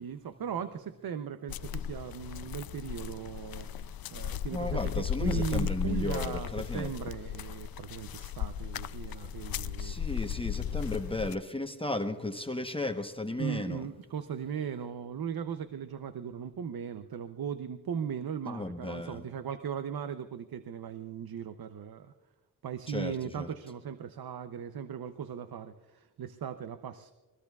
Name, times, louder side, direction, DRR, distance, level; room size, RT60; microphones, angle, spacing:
voice 1, 0.0-10.2 10.7-11.1 13.4-22.1 22.6-27.1, right 8 dB, 85° right, 10 dB, 0.7 m, -38 dB
sound 1, 1.5-11.3, left 9 dB, 80° left, 0.5 m, -36 dB
voice 2, 4.5-6.9 9.8-13.9 18.4-19.3 22.9-23.5, left 2 dB, 15° left, 6 dB, 0.9 m, -35 dB
25.5 x 21.0 x 2.4 m, 1.2 s
cardioid pair, 70°, 35 cm